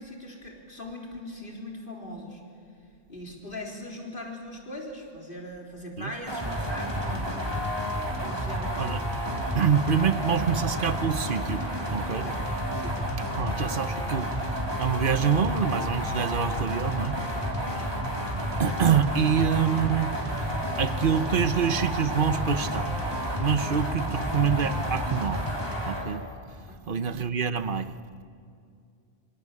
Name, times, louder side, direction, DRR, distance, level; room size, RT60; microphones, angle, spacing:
voice 1, 0.0-2.4 3.1-7.7 8.0-8.8 10.4-10.6 12.1-12.4 12.7-13.0 17.6-17.9 26.7-27.2, left 1 dB, 60° left, 4.3 m, -41 dB
sound 1, 6.3-26.1, equal, 25° right, 3.9 m, -30 dB
voice 2, 9.5-11.6 11.9-12.2 13.4-14.3 14.8-17.1 18.6-20.1 20.8-22.9 23.3-25.4 25.9-26.2 26.9-27.9, right 7 dB, 60° right, 1.2 m, -26 dB
25.5 x 24.5 x 8.6 m
omnidirectional pair, 1.0 m